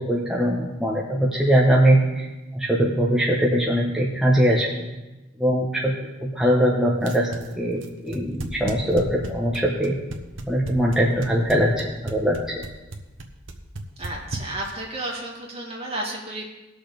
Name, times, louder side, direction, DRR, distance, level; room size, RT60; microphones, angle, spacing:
voice 1, 0.0-2.3 2.5-4.8 5.4-5.9 6.2-7.3 7.6-10.0 10.5-12.4, right 1 dB, 5° right, -5 dB, 1.0 m, -21 dB
sound 1, 7.0-14.9, right 2 dB, 75° right, 1.1 m, -33 dB
voice 2, 14.0-16.4, right 1 dB, 30° right, -2 dB, 2.3 m, -32 dB
18.5 x 6.4 x 3.4 m, 1.1 s
head